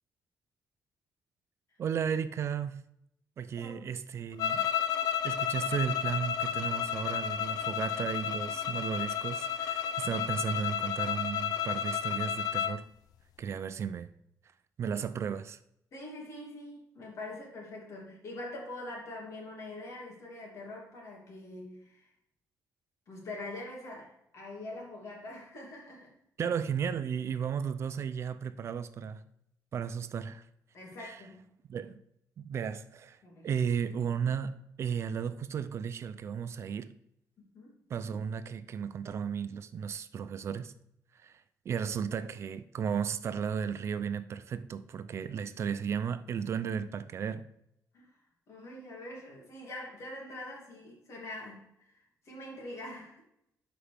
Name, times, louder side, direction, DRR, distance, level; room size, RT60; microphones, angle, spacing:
voice 1, 1.8-2.8 3.4-4.7 5.2-12.9 13.4-14.1 14.8-15.6 26.4-29.2 29.7-30.4 31.0-31.2 31.7-32.0 32.4-33.2 33.4-36.9 37.9-40.7 41.1-47.5, right 7 dB, 45° right, 0.4 m, -34 dB
sound 1, 4.4-12.8, left 9 dB, 75° left, 0.5 m, -32 dB
voice 2, 15.9-22.1 23.1-26.1 30.7-31.5 33.2-33.5 37.5-37.7 47.9-48.1 48.5-53.2, left 2 dB, 50° left, 2.8 m, -44 dB
11.5 x 5.1 x 3.4 m
cardioid pair, 170°, 6 cm